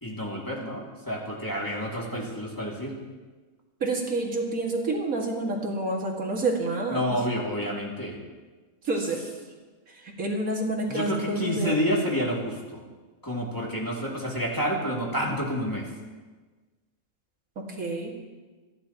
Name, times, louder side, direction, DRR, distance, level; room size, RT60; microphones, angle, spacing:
voice 1, 0.0-2.9 6.9-8.2 10.9-12.8 13.2-15.9, equal, 15° left, -4 dB, 2.5 m, -29 dB
voice 2, 3.8-7.0 8.8-9.2 10.0-11.8 17.6-18.1, right 2 dB, 80° right, -1 dB, 2.4 m, -28 dB
28.5 x 11.0 x 3.0 m, 1.3 s
omnidirectional pair, 1.5 m